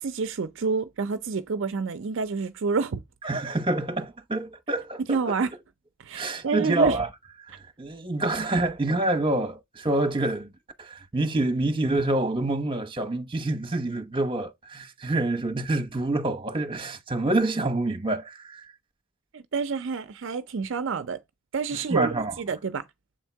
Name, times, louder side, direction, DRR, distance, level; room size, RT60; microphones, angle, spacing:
voice 1, 0.0-3.0 5.1-5.5 6.0-7.0 19.3-21.2 21.5-22.9, right 5 dB, 60° right, 0.5 m, -28 dB
voice 2, 3.2-5.2 6.1-7.1 7.5-10.5 10.8-18.6 21.7-22.3, right 2 dB, 25° right, 1.1 m, -27 dB
7.6 x 3.6 x 4.5 m
head